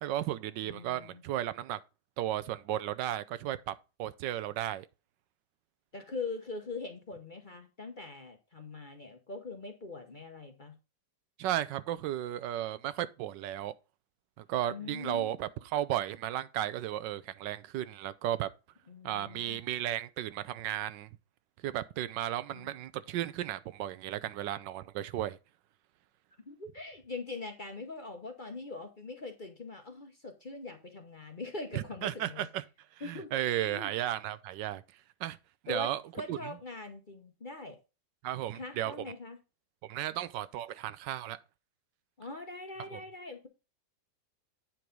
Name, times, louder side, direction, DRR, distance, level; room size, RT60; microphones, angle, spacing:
voice 1, 0.0-1.8 2.2-4.9 11.4-13.7 14.4-18.5 19.0-21.1 21.6-25.4 31.7-32.6 33.0-34.8 35.2-35.4 35.7-36.0 36.3-36.4 38.2-39.0 39.8-41.4 42.9-43.0, right 12 dB, 80° right, 1.3 m, -34 dB
voice 2, 0.6-1.2 5.9-10.8 14.7-15.3 18.9-19.6 22.5-22.7 26.4-32.5 33.0-33.9 35.7-37.8 38.5-39.4 42.2-43.5, left 3 dB, 35° left, 0.9 m, -42 dB
9.0 x 4.7 x 5.2 m
omnidirectional pair, 1.9 m